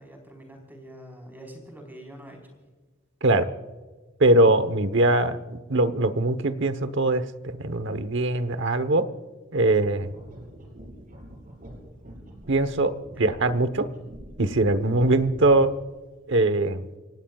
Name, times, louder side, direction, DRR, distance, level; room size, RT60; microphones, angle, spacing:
voice 1, 0.0-2.6 13.1-13.4, equal, 10° right, 2 dB, 4.4 m, -45 dB
voice 2, 3.2-3.5 4.2-9.1 9.5-10.1 12.5-13.9 14.4-15.7 16.3-16.9, right 2 dB, 60° right, 12 dB, 1.1 m, -22 dB
sound 1, 9.8-15.9, equal, 40° right, 4.2 m, -45 dB
29.0 x 17.0 x 2.4 m, 1.3 s
head